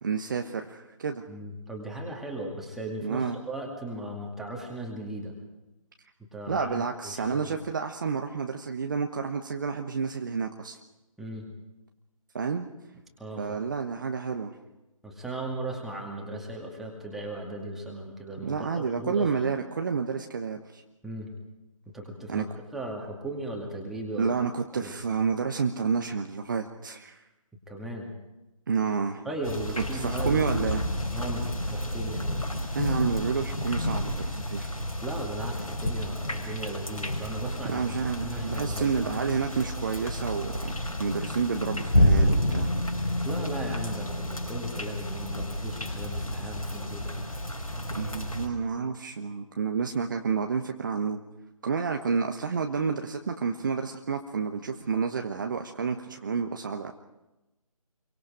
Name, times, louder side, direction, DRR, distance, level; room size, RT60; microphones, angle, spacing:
voice 1, 0.0-1.2 3.0-3.4 6.5-10.8 12.3-12.7 13.4-14.5 18.4-20.8 22.3-22.4 24.2-27.2 28.7-29.2 29.8-30.8 32.7-34.7 37.6-42.7 47.9-51.2 51.6-56.9, right 5 dB, 35° right, 4 dB, 1.1 m, -30 dB
voice 2, 1.3-5.3 6.3-7.6 11.2-11.5 13.2-13.5 15.0-19.6 21.0-21.3 21.9-22.5 22.7-24.3 24.7-24.9 27.7-28.1 29.2-30.7 31.1-32.5 35.0-37.8 38.2-39.1 43.2-47.2, right 1 dB, ahead, -1 dB, 2.3 m, -37 dB
sound 1, 29.4-48.5, equal, 75° left, 5.3 m, -30 dB
29.0 x 23.5 x 5.0 m, 1.0 s
figure-of-eight pair, 150°, 19 cm